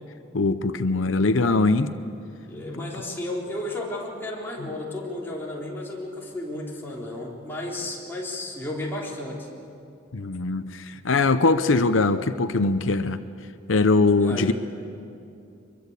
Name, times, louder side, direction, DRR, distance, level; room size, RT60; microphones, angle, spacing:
voice 1, 0.3-1.9 10.1-13.2 13.7-14.5, left 3 dB, 85° left, 11 dB, 0.7 m, -21 dB
voice 2, 2.5-9.5 14.2-14.5, left 1 dB, 10° left, -5 dB, 3.9 m, -33 dB
24.5 x 22.5 x 8.3 m, 2.6 s
head